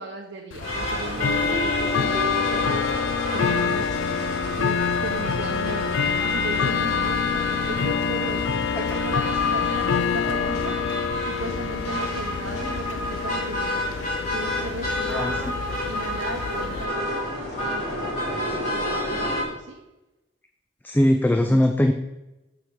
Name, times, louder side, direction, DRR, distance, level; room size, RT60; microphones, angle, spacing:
voice 1, 0.0-2.8 3.3-4.1 4.6-4.7 5.0-10.7 11.2-13.8 14.3-17.9 18.7-19.8 21.4-21.6, right 2 dB, 60° right, 0 dB, 0.8 m, -36 dB
Bell / Tick-tock, 0.5-16.9, left 6 dB, 80° left, 0.4 m, -26 dB
sound 1, 0.6-19.4, equal, 40° left, 2.8 m, -30 dB
voice 2, 20.8-21.9, left 1 dB, 10° left, 6 dB, 0.3 m, -20 dB
6.6 x 4.9 x 6.2 m, 0.98 s
head